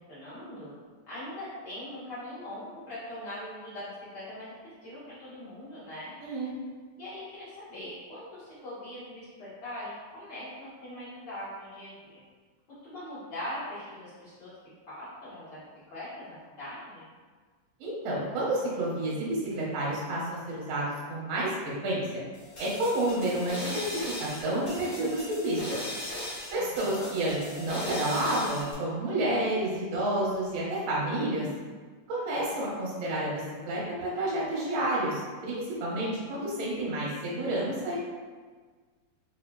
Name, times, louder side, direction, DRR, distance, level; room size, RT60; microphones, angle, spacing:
voice 1, 0.1-0.7 1.1-4.5 4.8-6.1 7.0-12.2 12.8-14.5 14.9-17.0 26.5-27.1, left 1 dB, 85° left, -13 dB, 0.9 m, -41 dB
voice 2, 6.2-6.5 17.8-22.1 22.6-25.8 26.5-31.5 32.1-38.0, right 1 dB, 80° right, -6 dB, 1.4 m, -30 dB
sound 1, 22.3-28.7, left 1 dB, 60° left, 0.8 m, -39 dB
5.5 x 2.3 x 2.3 m, 1.5 s
omnidirectional pair, 4.1 m